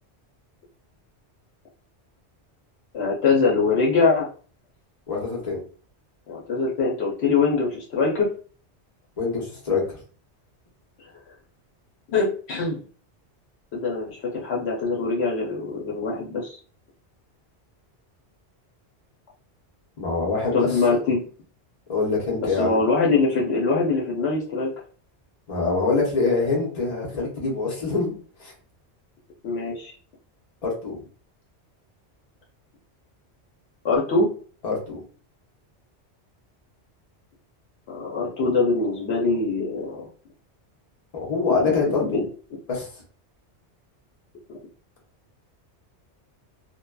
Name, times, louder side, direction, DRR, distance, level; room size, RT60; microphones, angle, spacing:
voice 1, 2.9-4.3 6.3-8.3 12.1-12.8 13.7-16.6 20.5-21.2 22.4-24.7 29.4-29.9 33.8-34.3 37.9-40.1 41.6-41.7 42.0-42.2, left 4 dB, 70° left, -3 dB, 0.9 m, -23 dB
voice 2, 5.1-5.6 9.2-10.0 20.0-21.0 21.9-22.8 25.5-28.1 28.4-28.5 30.6-31.0 34.6-35.0 41.1-42.2 42.7-42.9, left 4 dB, 35° left, -2 dB, 0.9 m, -25 dB
2.6 x 2.2 x 2.2 m, 0.41 s
omnidirectional pair, 1.2 m